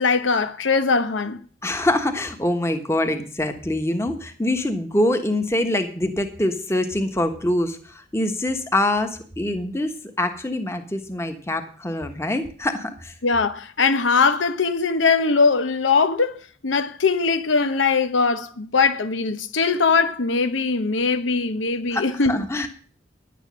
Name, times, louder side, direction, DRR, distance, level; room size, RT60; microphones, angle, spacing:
voice 1, 0.0-1.4 13.2-16.3 16.6-22.4, left 4 dB, 90° left, 0.9 m, -21 dB
voice 2, 1.6-13.1 21.9-22.7, left 1 dB, 15° left, 1.3 m, -24 dB
10.5 x 9.0 x 6.2 m
head